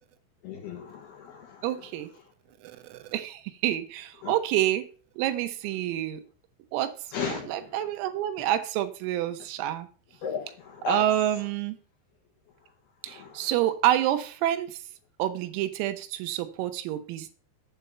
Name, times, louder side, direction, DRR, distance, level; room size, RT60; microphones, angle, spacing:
voice 1, 0.4-2.0 4.2-4.3 7.1-7.9 10.2-11.0 13.1-13.5, left 7 dB, 70° left, 2.7 m, -36 dB
voice 2, 1.6-2.1 2.9-4.9 5.2-6.2 6.7-6.9 7.3-9.9 10.9-11.8 13.0-14.7 15.2-17.3, right 12 dB, 85° right, 3.6 m, -28 dB
8.2 x 8.1 x 5.6 m
omnidirectional pair, 6.0 m